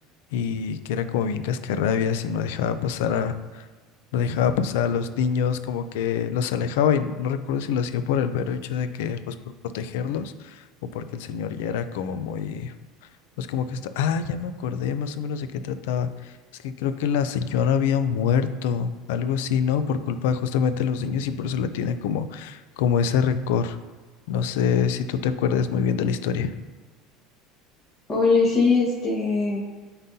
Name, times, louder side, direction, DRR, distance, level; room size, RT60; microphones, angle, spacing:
voice 1, 0.3-3.7 4.1-9.3 9.7-12.7 13.4-16.4 16.6-23.8 24.3-26.5, left 7 dB, 85° left, 11 dB, 0.4 m, -25 dB
voice 2, 28.1-29.6, left 4 dB, 25° left, -7 dB, 1.5 m, -20 dB
9.2 x 3.9 x 2.7 m, 1.5 s
cardioid pair, 145°, 0 cm